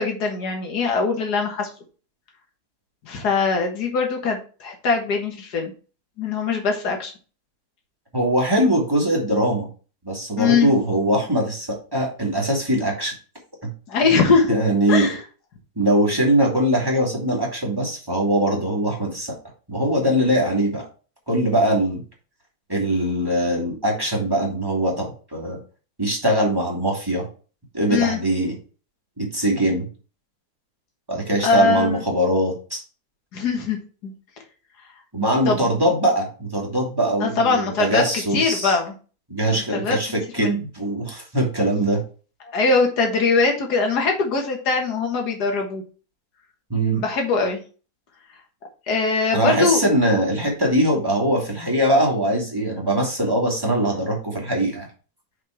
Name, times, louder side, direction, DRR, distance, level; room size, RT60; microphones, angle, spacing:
voice 1, 0.0-1.7 3.1-5.7 6.2-7.1 10.4-10.7 13.9-14.5 14.9-15.2 27.9-28.2 31.4-32.0 33.3-33.8 34.0-34.1 35.5-35.6 37.2-38.0 38.3-38.9 39.5-40.0 40.4-40.6 42.5-45.8 46.9-47.6 48.9-49.8, left 4 dB, 85° left, 2 dB, 2.0 m, -21 dB
voice 2, 8.1-9.7 10.0-13.1 14.5-15.1 15.8-19.3 19.7-20.9 21.3-22.0 22.7-25.6 26.0-27.3 27.7-28.5 29.2-29.9 31.1-32.8 35.1-38.8 39.3-42.0 46.7-47.0 49.3-54.9, right 1 dB, 15° right, -2 dB, 2.2 m, -21 dB
5.8 x 5.1 x 4.5 m, 0.36 s
omnidirectional pair, 1.7 m